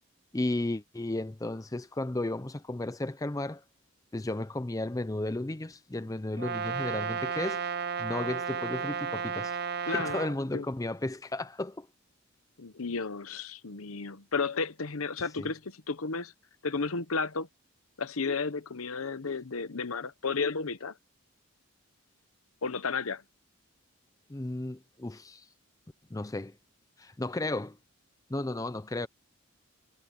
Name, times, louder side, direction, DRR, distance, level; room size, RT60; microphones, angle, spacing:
voice 1, 0.3-3.6 4.1-7.6 8.0-9.6 9.9-11.9 15.4-15.5 24.3-25.5 26.1-26.5 27.0-27.8 28.3-29.1, left 2 dB, 15° left, 0.5 m, -34 dB
Brass instrument, 6.4-10.4, right 6 dB, 45° right, 0.7 m, -33 dB
voice 2, 9.9-10.2 10.5-10.7 12.6-16.3 16.6-17.5 18.0-20.9 22.6-23.2, left 4 dB, 75° left, 1.0 m, -33 dB
head